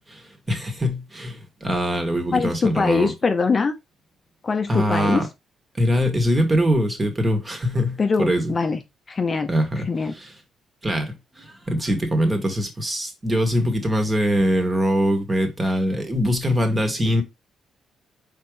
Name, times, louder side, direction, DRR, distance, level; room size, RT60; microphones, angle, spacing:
voice 1, 0.1-3.1 4.7-5.3 5.8-8.5 9.5-9.9 10.2-10.3 10.8-17.2, equal, 20° right, 1.4 m, -23 dB
voice 2, 2.3-3.7 4.4-5.2 8.0-8.8 9.1-9.5 9.9-10.1, left 4 dB, 35° left, 0.6 m, -22 dB
4.4 x 3.6 x 3.2 m
cardioid pair, 90°, 0 cm